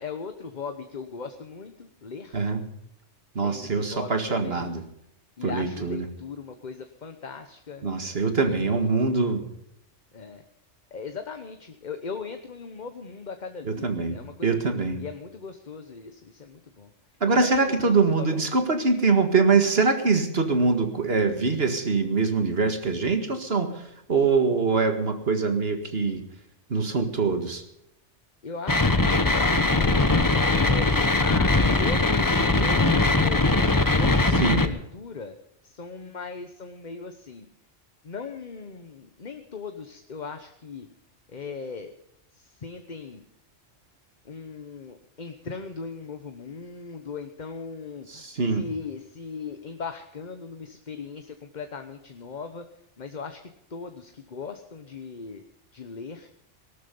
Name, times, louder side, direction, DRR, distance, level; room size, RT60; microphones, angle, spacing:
voice 1, 0.0-2.4 3.4-4.7 5.4-8.8 10.1-10.4 10.9-14.7 15.0-16.9 17.3-18.4 28.4-35.3 35.6-37.5 38.0-40.9 41.3-41.9 42.3-43.2 44.2-52.7 53.0-55.4 55.7-56.3, left 5 dB, 40° left, 7 dB, 1.1 m, -39 dB
voice 2, 2.3-2.6 3.4-4.8 5.4-6.1 7.8-9.4 13.6-15.0 17.2-23.8 24.1-26.2 26.7-27.6 34.4-34.6 48.1-48.7, right 4 dB, 55° right, 7 dB, 2.1 m, -23 dB
sound 1, 28.7-34.7, left 2 dB, 20° left, 0.9 m, -21 dB
18.0 x 12.5 x 5.3 m, 0.79 s
omnidirectional pair, 1.2 m